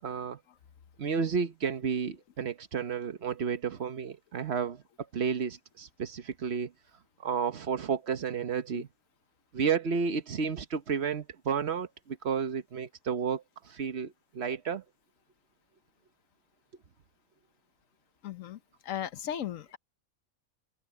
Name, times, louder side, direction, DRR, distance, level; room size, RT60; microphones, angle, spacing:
voice 1, 0.0-0.4 1.0-4.8 5.1-6.7 7.2-8.9 9.5-14.8, right 6 dB, 55° right, 1.2 m, -32 dB
voice 2, 18.2-19.8, left 10 dB, 70° left, 1.2 m, -37 dB
omnidirectional pair, 1.4 m